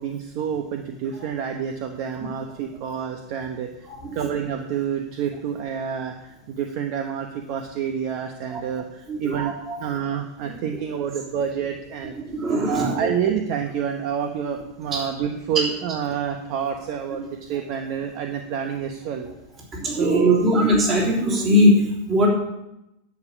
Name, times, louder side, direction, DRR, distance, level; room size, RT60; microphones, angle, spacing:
voice 1, 0.0-3.9 4.1-9.5 9.8-12.1 12.7-19.3 19.8-20.4, right 8 dB, 40° right, 5 dB, 1.1 m, -28 dB
voice 2, 3.9-4.2 8.5-8.6 9.1-10.0 12.2-13.1 14.9-15.1 19.7-22.3, equal, 20° right, -2 dB, 3.5 m, -20 dB
10.5 x 7.3 x 8.7 m, 0.90 s
supercardioid pair, 165°, 0 cm